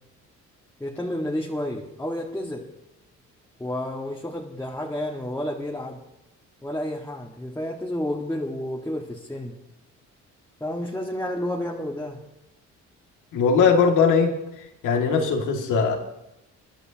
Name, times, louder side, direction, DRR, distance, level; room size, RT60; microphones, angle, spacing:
voice 1, 0.8-2.7 3.6-6.0 6.6-9.6 10.6-12.2, left 1 dB, 10° left, -3 dB, 1.8 m, -30 dB
voice 2, 13.3-14.3 14.8-16.0, left 5 dB, 85° left, 1 dB, 2.4 m, -19 dB
27.5 x 11.5 x 2.9 m, 0.89 s
cardioid pair, 90°, 30 cm